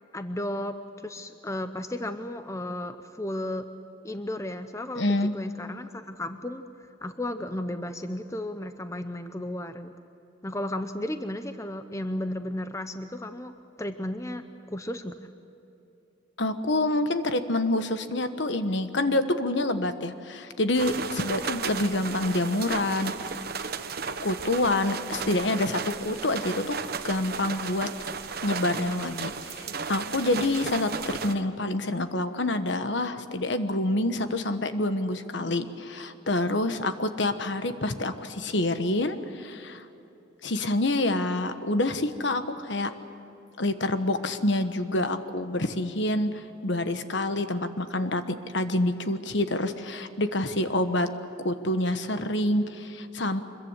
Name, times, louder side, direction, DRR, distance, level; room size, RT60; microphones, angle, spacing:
voice 1, 0.1-3.7 4.0-6.6 7.0-9.9 10.4-15.1, left 1 dB, 15° left, 9 dB, 0.7 m, -34 dB
voice 2, 5.0-5.3 16.4-23.3 24.2-26.8 27.0-27.9 28.4-39.8 40.4-42.9 43.6-46.3 46.6-51.1 51.4-53.4, left 1 dB, 60° left, 9 dB, 1.3 m, -27 dB
sound 1, 20.7-31.3, right 5 dB, 50° right, 1.0 m, -34 dB
25.0 x 22.0 x 8.1 m, 2.9 s
head